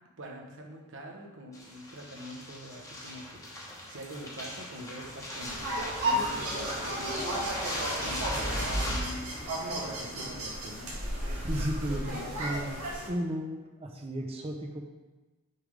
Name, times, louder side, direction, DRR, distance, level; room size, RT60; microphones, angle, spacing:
voice 1, 0.2-5.6 6.0-9.4 9.8-11.0 11.9-12.4, equal, 55° right, 1 dB, 0.9 m, -44 dB
sound 1, 1.5-9.0, equal, 15° left, 1.2 m, -37 dB
sound 2, 5.4-13.1, right 1 dB, 80° right, 1.7 m, -33 dB
voice 2, 11.3-14.8, equal, 25° right, 2 dB, 0.7 m, -35 dB
6.6 x 3.4 x 5.0 m, 1.2 s
head